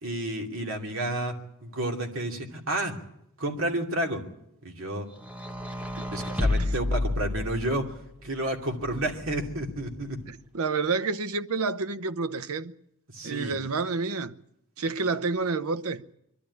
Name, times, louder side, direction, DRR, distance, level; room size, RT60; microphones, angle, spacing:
voice 1, 0.0-3.0 3.4-4.2 4.6-5.1 6.1-10.2 13.1-13.5, right 1 dB, 60° right, 2.7 m, -31 dB
sound 1, 5.2-7.9 8.8-9.8, left 2 dB, 5° right, 1.1 m, -30 dB
voice 2, 10.3-12.7 13.2-14.4 14.8-16.0, right 4 dB, 75° right, 0.8 m, -29 dB
23.0 x 12.5 x 9.8 m
head